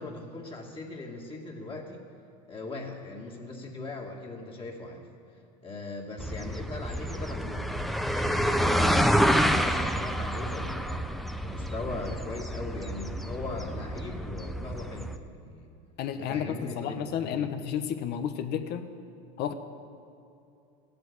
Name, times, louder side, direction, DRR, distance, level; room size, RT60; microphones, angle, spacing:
voice 1, 0.0-2.0 2.5-5.0 5.6-11.1 11.4-15.7 16.2-17.5, left 2 dB, 25° left, -1 dB, 2.2 m, -39 dB
sound 1, 6.2-15.2, equal, ahead, 0.6 m, -28 dB
voice 2, 16.0-18.9 19.4-19.5, left 9 dB, 55° left, 8 dB, 1.1 m, -32 dB
15.5 x 7.9 x 9.7 m, 2.7 s
supercardioid pair, 110°, 20 cm